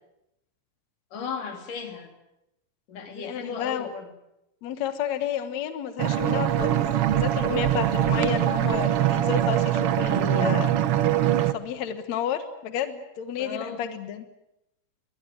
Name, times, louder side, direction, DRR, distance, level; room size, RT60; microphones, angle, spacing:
voice 1, 1.1-2.1 2.9-4.1 13.4-13.9, left 5 dB, 85° left, 5 dB, 4.5 m, -35 dB
voice 2, 3.1-3.9 4.6-6.8 7.1-10.8 11.4-14.3, left 9 dB, 65° left, 10 dB, 2.4 m, -31 dB
sound 1, 6.0-11.5, right 12 dB, 60° right, 1.7 m, -23 dB
22.0 x 22.0 x 9.2 m, 0.87 s
omnidirectional pair, 3.6 m